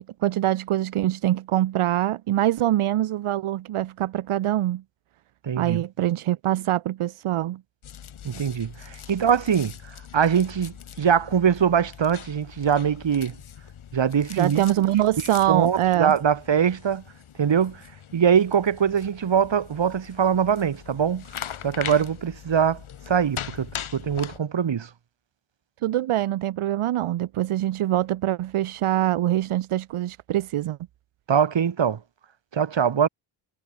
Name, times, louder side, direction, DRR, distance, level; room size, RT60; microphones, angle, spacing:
voice 1, 0.0-4.8 5.6-7.6 14.3-16.1 25.8-30.8, right 13 dB, 85° right, 1.4 m, -24 dB
voice 2, 5.4-5.8 8.2-9.7 10.1-13.4 13.9-14.6 15.5-17.0 17.4-17.8 18.1-21.3 21.6-22.8 23.1-24.9 31.3-32.0 32.5-33.1, right 7 dB, 60° right, 5.0 m, -22 dB
sound 1, 7.8-24.4, left 9 dB, 75° left, 6.9 m, -41 dB
cardioid pair, 70°, 49 cm